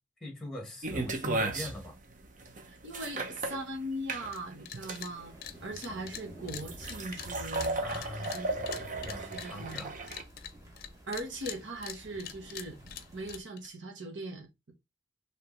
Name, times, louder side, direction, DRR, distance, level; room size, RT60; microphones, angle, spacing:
voice 1, 0.2-2.0 7.8-9.9, left 1 dB, 5° left, 1.7 m, -42 dB
sound 1, 0.8-10.2, right 2 dB, 45° right, 0.8 m, -36 dB
voice 2, 2.7-7.8 8.2-8.5 9.2-9.9 11.1-12.8 13.1-14.7, right 1 dB, 75° right, 1.2 m, -40 dB
sound 2, 4.3-4.4 4.7-5.1 5.4-10.9 11.1-13.7, left 10 dB, 50° left, 0.6 m, -43 dB
sound 3, 5.1-13.4, equal, 15° right, 1.1 m, -52 dB
5.0 x 3.3 x 3.2 m
head